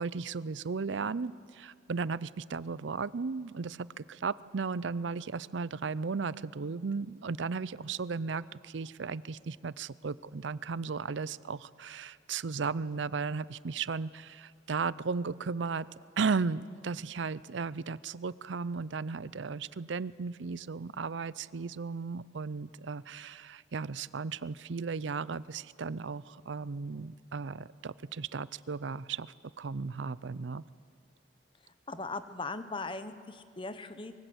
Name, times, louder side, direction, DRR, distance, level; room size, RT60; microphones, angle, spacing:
voice 1, 0.0-15.9 16.2-30.6, right 5 dB, 75° right, 19 dB, 0.5 m, -35 dB
voice 2, 31.9-34.1, left 3 dB, 25° left, 11 dB, 0.9 m, -39 dB
24.0 x 23.0 x 7.9 m, 2.2 s
head